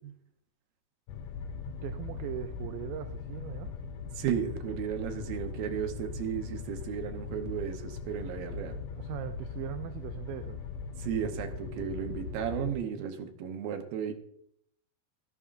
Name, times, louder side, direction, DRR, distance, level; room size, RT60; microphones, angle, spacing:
sound 1, 1.1-12.8, left 5 dB, 75° left, 2.7 m, -40 dB
voice 1, 1.7-3.7 8.6-10.6, right 12 dB, 90° right, 9 dB, 2.0 m, -40 dB
voice 2, 4.2-8.8 11.0-14.1, right 8 dB, 70° right, 5 dB, 2.5 m, -34 dB
13.5 x 11.0 x 2.5 m, 0.72 s
omnidirectional pair, 4.6 m